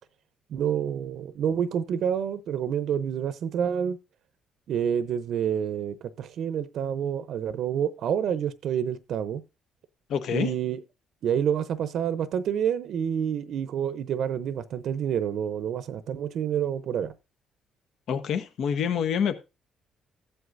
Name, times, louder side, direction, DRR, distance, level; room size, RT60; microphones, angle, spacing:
voice 1, 0.5-4.0 4.7-9.4 10.3-10.8 11.2-17.1, right 8 dB, 65° right, 0.7 m, -28 dB
voice 2, 10.1-10.5 18.1-19.3, left 7 dB, 65° left, 0.9 m, -26 dB
14.5 x 8.0 x 2.6 m
cardioid pair, 100°, 0 cm